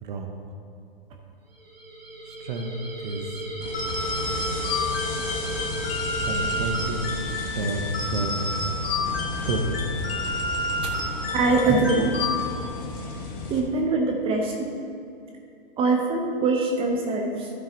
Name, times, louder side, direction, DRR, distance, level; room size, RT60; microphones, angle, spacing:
voice 1, 0.0-0.3 2.2-2.7 3.0-3.2 6.2-7.1 7.4-8.4 9.5-9.9, right 3 dB, 55° right, 3 dB, 1.1 m, -30 dB
sound 1, 1.5-7.9, right 1 dB, 85° right, 2.1 m, -36 dB
sound 2, 3.6-13.6, left 3 dB, 30° left, 1.3 m, -33 dB
sound 3, 3.7-12.8, left 2 dB, 85° left, 1.8 m, -30 dB
voice 2, 11.3-12.2 13.5-14.7 15.8-17.5, right 3 dB, 20° right, 1 dB, 0.8 m, -23 dB
11.5 x 6.3 x 4.0 m, 2.6 s
hypercardioid pair, 125°, 29 cm